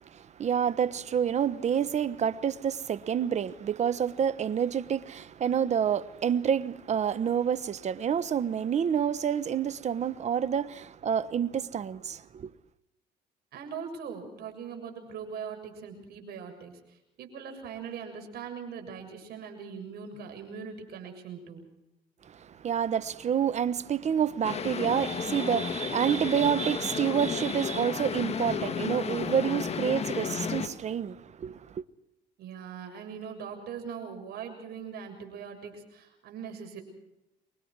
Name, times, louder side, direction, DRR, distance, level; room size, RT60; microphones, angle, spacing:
voice 1, 0.1-12.5 22.3-31.8, right 8 dB, 45° right, 1.0 m, -28 dB
voice 2, 13.5-21.6 32.4-36.8, right 6 dB, 70° right, 6.9 m, -41 dB
sound 1, 24.4-30.7, left 6 dB, 40° left, 2.1 m, -33 dB
28.0 x 23.5 x 4.7 m
cardioid pair, 110°, 17 cm